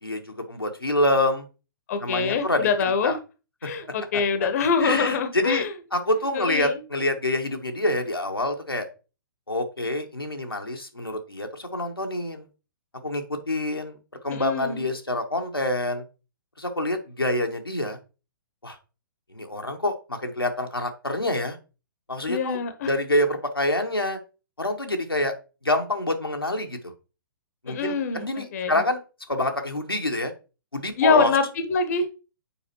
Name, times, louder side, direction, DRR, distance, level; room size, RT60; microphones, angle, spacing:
voice 1, 0.0-1.5 2.0-2.7 3.0-3.1 3.6-3.7 4.1-4.5 4.8-8.9 9.5-12.5 13.0-14.0 14.2-16.0 16.6-18.0 18.6-18.8 19.3-21.6 22.1-22.6 22.9-24.2 24.6-25.3 25.6-26.9 27.6-29.0 29.3-30.3 30.7-31.3, left 1 dB, 90° left, 3 dB, 1.1 m, -26 dB
voice 2, 1.9-3.2 3.6-5.7 6.3-6.8 14.3-14.8 22.3-22.9 27.7-28.7 31.0-31.4 31.7-32.1, left 5 dB, 45° left, 10 dB, 0.9 m, -24 dB
7.1 x 4.9 x 2.9 m, 0.32 s
figure-of-eight pair, 120°, 12 cm